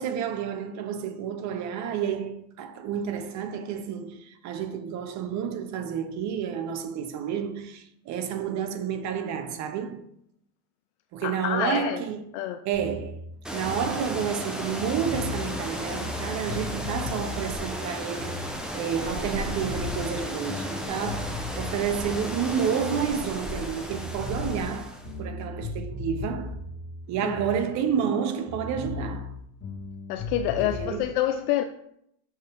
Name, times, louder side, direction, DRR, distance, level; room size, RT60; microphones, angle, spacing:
voice 1, 0.0-10.0 11.1-12.2 12.6-13.2 13.5-26.6 27.1-29.3 30.6-31.1, right 7 dB, 45° right, 0.7 m, -30 dB
voice 2, 11.2-12.0 12.3-12.6 27.2-27.4 30.1-31.6, left 12 dB, 55° left, 0.5 m, -27 dB
sound 1, 12.7-19.0 19.3-23.6 23.9-28.2 28.5-31.0, left 2 dB, 25° left, 1.8 m, -37 dB
sound 2, 13.4-25.1, equal, ahead, 0.7 m, -34 dB
6.3 x 4.6 x 3.5 m
supercardioid pair, 115°, 41 cm